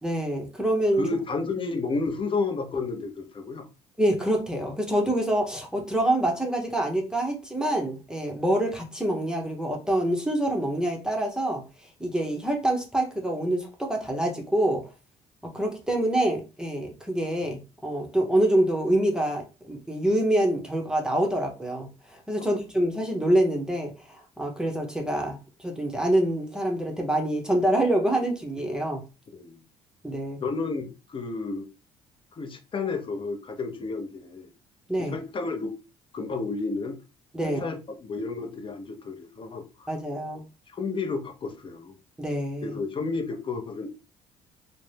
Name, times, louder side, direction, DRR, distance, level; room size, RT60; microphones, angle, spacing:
voice 1, 0.0-1.0 4.0-11.6 12.0-14.8 15.4-23.9 24.4-29.0 30.0-30.4 34.9-35.2 37.3-37.6 39.9-40.4 42.2-42.8, right 1 dB, 5° right, 0.7 m, -26 dB
voice 2, 1.0-3.7 22.4-22.5 29.3-29.6 30.4-31.7 32.3-34.5 35.0-35.7 36.1-37.0 37.4-39.9 40.7-42.0 42.6-43.9, left 3 dB, 35° left, 0.7 m, -31 dB
2.5 x 2.1 x 3.3 m
supercardioid pair, 70°, 15 cm